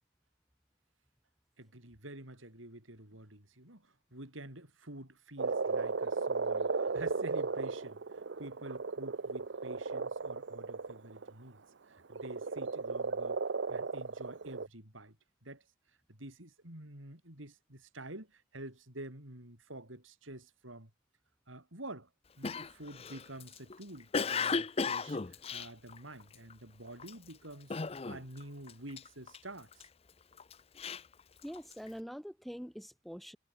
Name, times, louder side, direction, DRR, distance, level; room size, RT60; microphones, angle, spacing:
voice 1, 1.6-11.6 11.9-13.4 13.7-15.2 15.4-15.7 16.1-20.9 21.5-22.1 22.4-29.9, right 1 dB, 80° right, 6.7 m, -48 dB
Frog, 5.4-11.3 12.1-14.7, right 4 dB, 60° right, 0.7 m, -35 dB
Cough, 22.4-26.5 27.0-27.3 27.7-28.4 28.7-29.8 30.4-31.9, left 5 dB, 30° left, 0.5 m, -35 dB
voice 2, 31.4-33.4, equal, ahead, 2.0 m, -44 dB
head